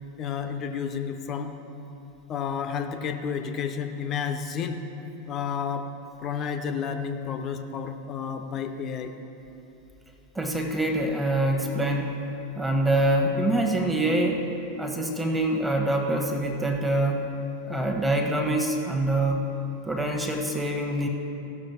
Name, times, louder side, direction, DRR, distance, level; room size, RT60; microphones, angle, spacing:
voice 1, 0.2-1.6 2.3-4.8 5.3-5.9 6.2-9.1, left 7 dB, 30° left, 7 dB, 0.7 m, -31 dB
voice 2, 10.3-12.2 12.5-14.5 14.8-17.3 17.7-19.5 19.9-21.1, right 1 dB, 10° right, 1 dB, 1.3 m, -25 dB
16.5 x 6.4 x 4.3 m, 3.0 s
figure-of-eight pair, 90°, 0 cm